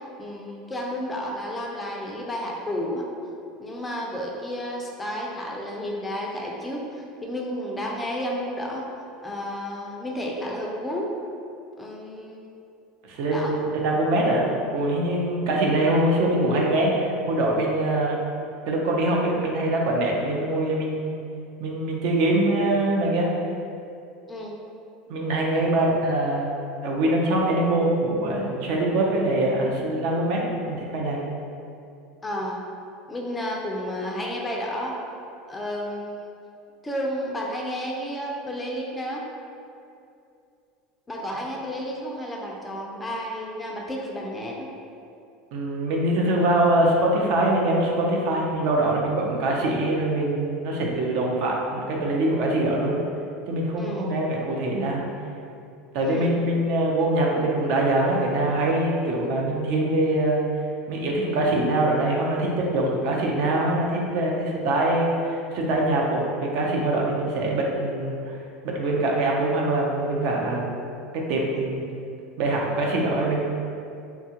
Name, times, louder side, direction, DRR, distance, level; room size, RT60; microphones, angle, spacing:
voice 1, 0.2-3.0 3.6-8.9 9.2-11.1 11.8-12.5 13.3-13.6 24.3-24.5 25.5-25.7 32.2-32.6 33.1-35.0 35.5-36.3 36.8-39.3 41.1-44.7 53.8-54.1 56.0-56.4, equal, 10° left, -1 dB, 0.3 m, -31 dB
voice 2, 13.0-18.2 18.7-21.1 21.6-23.3 25.1-26.5 26.8-31.2 45.5-53.0 53.5-55.0 55.9-60.4 60.9-68.4 68.6-70.8 71.3-71.9 72.4-73.4, right 1 dB, 65° right, -1 dB, 0.5 m, -23 dB
2.8 x 2.3 x 2.8 m, 2.5 s
supercardioid pair, 135°, 0 cm